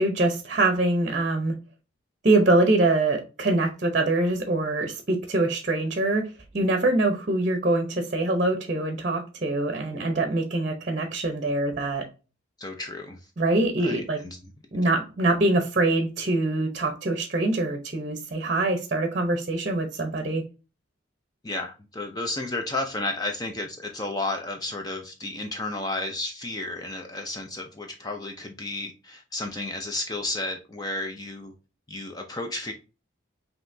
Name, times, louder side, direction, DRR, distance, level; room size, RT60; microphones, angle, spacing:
voice 1, 0.0-1.5 2.2-12.1 13.4-14.2 14.7-20.4, right 2 dB, 40° right, 0.7 m, -24 dB
voice 2, 12.6-13.2 13.8-14.4 21.4-31.5 31.9-32.7, left 2 dB, 20° left, 0.5 m, -32 dB
5.5 x 2.9 x 2.6 m
head